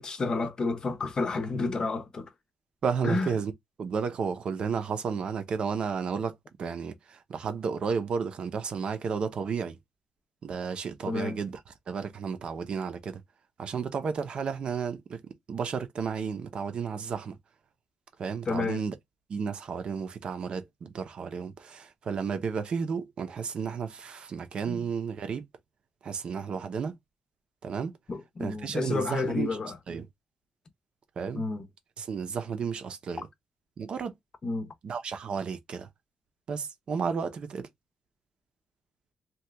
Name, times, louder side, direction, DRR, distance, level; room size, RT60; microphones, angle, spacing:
voice 1, 0.0-2.3 3.0-3.3 11.1-11.4 18.5-18.8 24.7-24.9 28.1-29.8 31.3-31.6 34.4-34.7, left 3 dB, 35° left, 0.6 m, -30 dB
voice 2, 2.8-3.5 3.8-9.8 10.4-11.6 11.9-13.2 13.6-17.4 18.2-18.9 19.3-25.4 26.0-26.9 27.6-27.9 28.4-29.6 29.9-30.1 31.2-31.4 32.0-33.3 33.8-34.1 34.8-35.9 36.5-37.7, right 6 dB, 50° right, 0.6 m, -32 dB
2.9 x 2.3 x 3.3 m
cardioid pair, 140°, 2 cm